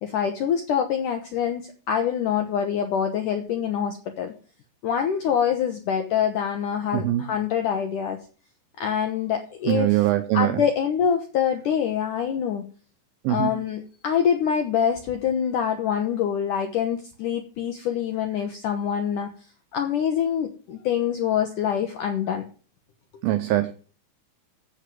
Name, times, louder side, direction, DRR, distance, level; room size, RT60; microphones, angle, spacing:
voice 1, 0.0-4.3 4.8-8.2 8.8-10.0 10.3-12.6 13.3-19.3 19.7-22.5, left 8 dB, 75° left, 1.9 m, -25 dB
voice 2, 6.9-7.3 9.7-10.6 13.2-13.6 23.2-23.7, right 14 dB, 85° right, 2.1 m, -22 dB
8.5 x 8.0 x 7.5 m
omnidirectional pair, 5.2 m